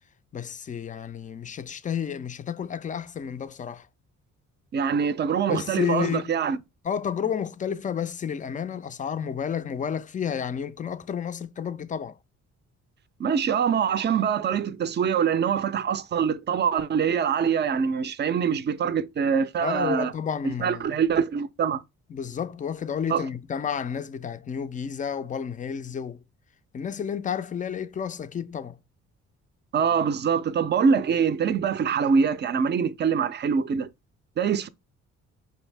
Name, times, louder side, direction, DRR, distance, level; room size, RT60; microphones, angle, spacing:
voice 1, 0.3-3.9 5.5-6.4 6.8-12.1 19.6-20.9 22.1-26.2 26.7-28.8, left 7 dB, 25° left, 0.4 m, -31 dB
voice 2, 4.7-6.6 13.2-20.1 20.4-21.8 23.1-23.2 29.7-33.9 34.4-34.7, right 6 dB, 35° right, 0.5 m, -24 dB
5.5 x 2.6 x 3.2 m
cardioid pair, 90°, 30 cm